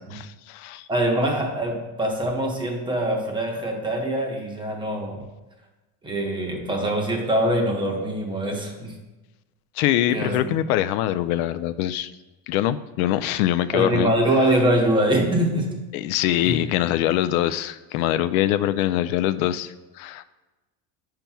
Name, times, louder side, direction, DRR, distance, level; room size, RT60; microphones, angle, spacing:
voice 1, 0.1-0.9 9.8-12.1 12.5-14.1 15.9-20.2, left 12 dB, 90° left, 13 dB, 0.5 m, -23 dB
voice 2, 0.9-5.2 6.0-9.0 10.1-10.6 13.7-15.8 16.4-16.6, right 1 dB, 10° right, 1 dB, 0.7 m, -23 dB
10.5 x 5.7 x 2.3 m, 1.1 s
cardioid pair, 155°, 41 cm